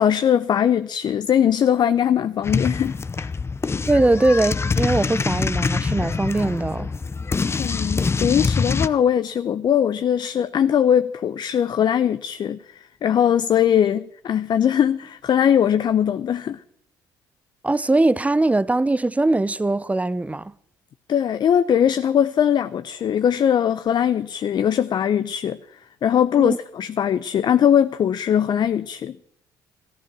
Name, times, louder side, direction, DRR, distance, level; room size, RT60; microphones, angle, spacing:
voice 1, 0.0-3.3 7.6-16.6 21.1-25.6 26.0-29.2, left 9 dB, 50° left, 0.7 m, -20 dB
sound 1, 2.4-8.9, left 4 dB, 30° left, 0.8 m, -24 dB
voice 2, 3.9-6.9 17.6-20.5 26.4-26.6, right 2 dB, 15° right, 0.7 m, -21 dB
14.5 x 14.0 x 6.1 m
hypercardioid pair, 55°, 9 cm